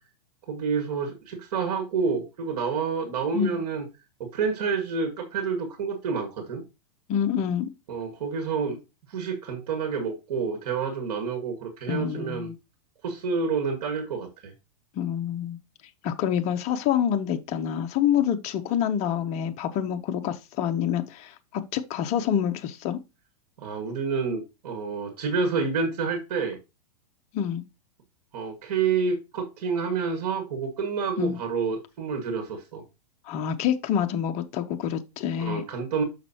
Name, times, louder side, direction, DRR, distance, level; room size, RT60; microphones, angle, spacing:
voice 1, 0.5-3.8 4.2-6.6 7.9-8.8 9.1-12.5 13.0-14.5 23.6-26.6 28.3-32.8 35.4-36.0, right 5 dB, 65° right, 1.9 m, -28 dB
voice 2, 7.1-7.7 11.9-12.6 15.0-15.6 16.0-23.0 27.3-27.6 31.2-31.4 33.3-35.6, left 9 dB, 35° left, 0.7 m, -27 dB
6.3 x 5.9 x 2.9 m
hypercardioid pair, 130°, 20 cm